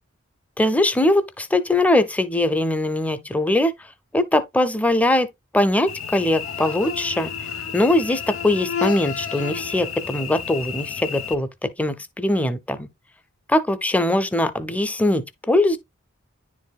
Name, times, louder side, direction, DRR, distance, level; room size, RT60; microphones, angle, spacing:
voice 1, 0.6-3.7 4.1-5.3 5.5-7.3 7.7-12.9 13.5-15.8, left 1 dB, 5° left, 0.5 m, -21 dB
Cricket / Buzz, 5.9-11.3, left 7 dB, 85° left, 0.9 m, -31 dB
10.0 x 4.6 x 2.3 m
head